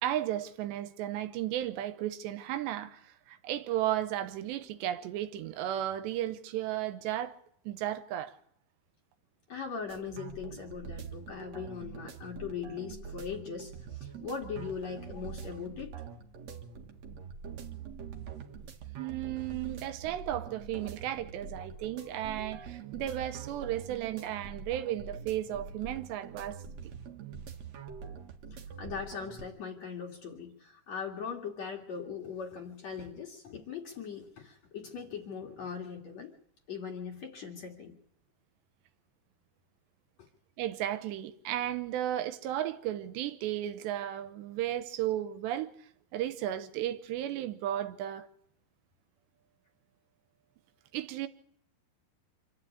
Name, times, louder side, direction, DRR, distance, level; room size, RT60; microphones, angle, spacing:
voice 1, 0.0-7.3 7.7-8.4 19.0-26.6 40.6-45.7 46.1-48.3 50.9-51.3, right 12 dB, 80° right, 3.1 m, -34 dB
voice 2, 9.5-16.0 28.5-36.3 36.7-38.0, left 6 dB, 50° left, 2.6 m, -40 dB
sound 1, 9.9-29.4, right 6 dB, 55° right, 2.1 m, -44 dB
26.0 x 12.5 x 8.5 m
omnidirectional pair, 5.0 m